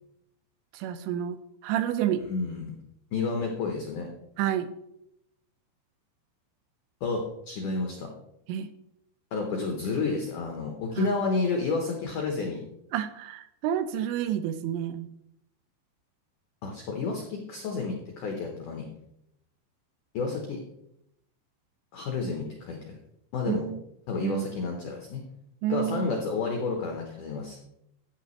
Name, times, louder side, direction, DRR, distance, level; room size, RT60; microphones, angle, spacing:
voice 1, 0.7-1.4 1.6-2.2 4.4-4.7 8.5-8.7 11.0-11.1 12.9-15.1 23.5-23.8 24.2-24.6 25.6-26.2, right 10 dB, 80° right, 11 dB, 2.8 m, -29 dB
voice 2, 2.3-2.7 3.1-4.1 7.0-8.1 9.3-12.6 16.6-18.8 20.1-20.6 21.9-22.9 23.3-23.6 24.1-25.2 25.7-27.6, left 4 dB, 90° left, 2 dB, 1.8 m, -30 dB
11.5 x 9.0 x 3.2 m, 0.80 s
omnidirectional pair, 5.4 m